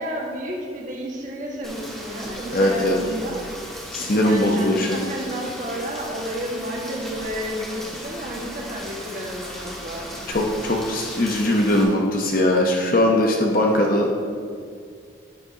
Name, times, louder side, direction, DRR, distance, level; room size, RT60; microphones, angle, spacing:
voice 1, 0.0-3.4 4.0-10.1 10.6-10.7 13.7-14.0, equal, 40° right, -2 dB, 1.6 m, -31 dB
Rain, 1.6-11.8, equal, ahead, 1.6 m, -37 dB
voice 2, 2.5-3.0 3.9-5.0 10.3-14.1, left 1 dB, 45° left, 0 dB, 0.9 m, -20 dB
11.0 x 9.5 x 2.9 m, 2.2 s
head